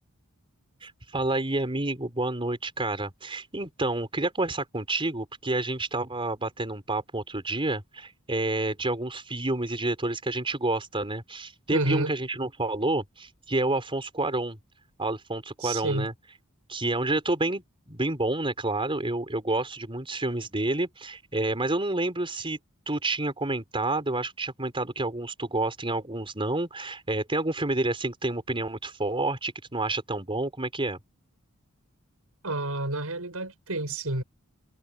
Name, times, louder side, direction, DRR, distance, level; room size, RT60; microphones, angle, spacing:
voice 1, 0.8-14.6 15.0-16.1 16.7-22.6 22.9-31.0, right 2 dB, 25° right, 4.5 m, -29 dB
voice 2, 11.7-12.1 15.6-16.1 32.4-34.2, right 2 dB, 80° right, 6.3 m, -29 dB
head